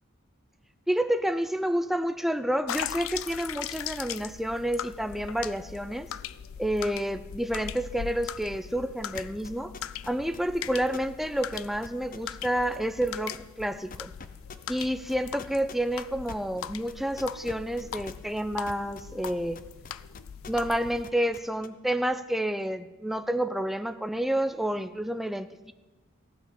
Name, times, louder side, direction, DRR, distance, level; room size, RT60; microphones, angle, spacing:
voice 1, 0.9-6.1 6.6-9.7 10.1-14.1 14.7-19.6 20.5-25.7, right 1 dB, ahead, 9 dB, 0.5 m, -29 dB
sound 1, 2.7-21.0, left 9 dB, 85° left, 0.4 m, -40 dB
sound 2, 9.1-11.3 11.5-12.8 13.0-13.6 13.9-20.8 21.0-21.7, left 4 dB, 45° left, 0.7 m, -44 dB
15.5 x 8.0 x 6.9 m, 1.2 s
head